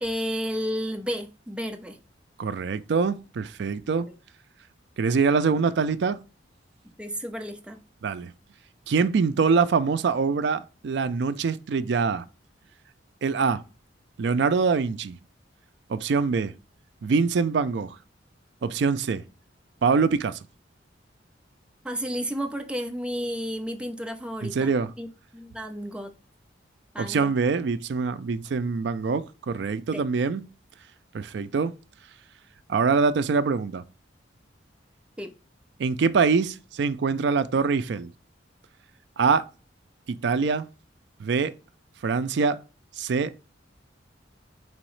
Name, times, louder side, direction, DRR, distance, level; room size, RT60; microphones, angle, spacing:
voice 1, 0.0-2.0 7.0-7.8 21.8-25.1 25.3-26.1 26.9-27.3 29.9-30.0 35.2-35.3, equal, 5° right, 0.5 m, -32 dB
voice 2, 2.4-4.1 5.0-6.2 8.0-8.3 8.9-12.3 13.2-13.6 14.2-15.2 15.9-16.5 17.0-18.0 18.6-19.2 19.8-20.4 24.4-24.9 27.0-30.4 31.1-31.7 32.7-33.8 35.8-38.1 39.2-39.4 40.1-40.7 41.2-41.5 42.0-42.6 43.0-43.3, right 5 dB, 65° right, 0.4 m, -24 dB
4.7 x 3.0 x 3.0 m
head